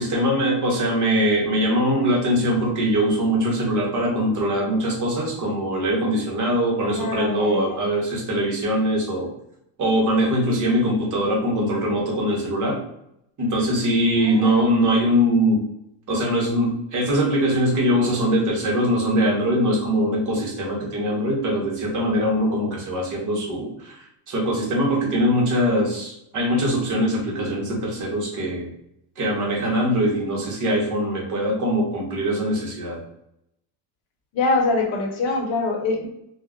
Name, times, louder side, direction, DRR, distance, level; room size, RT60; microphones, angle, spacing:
voice 1, 0.0-9.3 9.8-12.8 13.4-15.6 16.1-24.0 24.3-28.7 29.2-33.0, equal, 40° right, -2 dB, 0.8 m, -22 dB
voice 2, 7.0-7.8 14.2-14.7 34.3-36.1, left 3 dB, 70° left, 1 dB, 0.8 m, -24 dB
2.2 x 2.1 x 3.5 m, 0.77 s
cardioid pair, 160°, 49 cm